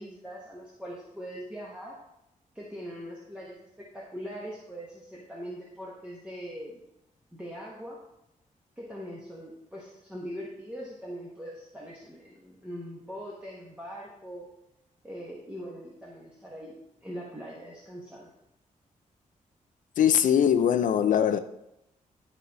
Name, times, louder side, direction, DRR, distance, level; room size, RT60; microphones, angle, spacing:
voice 1, 0.0-2.0 2.5-6.8 7.3-8.0 8.8-14.5 15.0-16.7 17.0-18.3, equal, 10° right, 1.1 m, -41 dB
voice 2, 20.0-21.4, left 9 dB, 70° left, 0.5 m, -21 dB
11.0 x 4.1 x 4.1 m
wide cardioid pair, 170°, 14 cm